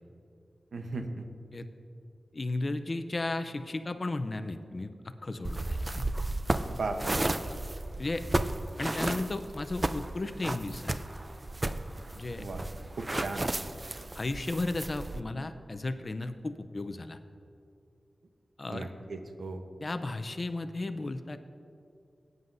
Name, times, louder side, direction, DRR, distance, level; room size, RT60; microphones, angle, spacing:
voice 1, 0.7-1.2 6.7-7.2 12.4-12.6 13.0-13.5 18.7-19.6, right 3 dB, 80° right, 5 dB, 0.9 m, -36 dB
voice 2, 2.3-4.9 5.2-6.1 7.5-7.6 8.0-8.2 8.8-10.9 12.1-12.4 14.1-17.2 18.6-18.9 19.8-21.4, left 2 dB, 40° left, 9 dB, 0.5 m, -34 dB
sound 1, 5.4-15.2, right 2 dB, 25° right, 0.4 m, -33 dB
19.0 x 9.4 x 2.6 m, 2.5 s
wide cardioid pair, 105°, 0 cm